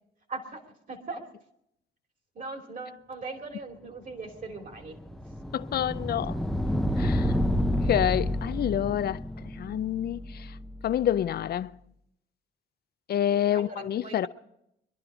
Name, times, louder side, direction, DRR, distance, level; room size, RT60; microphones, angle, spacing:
voice 1, 0.3-1.2 2.3-5.0 13.3-14.3, right 3 dB, 40° right, 2.8 m, -40 dB
sound 1, 4.4-11.3, left 1 dB, ahead, 0.7 m, -30 dB
voice 2, 5.5-6.4 7.0-7.3 7.8-10.6 10.8-11.8 13.1-14.3, left 10 dB, 50° left, 0.5 m, -28 dB
23.5 x 11.5 x 4.9 m
cardioid pair, 90°, 20 cm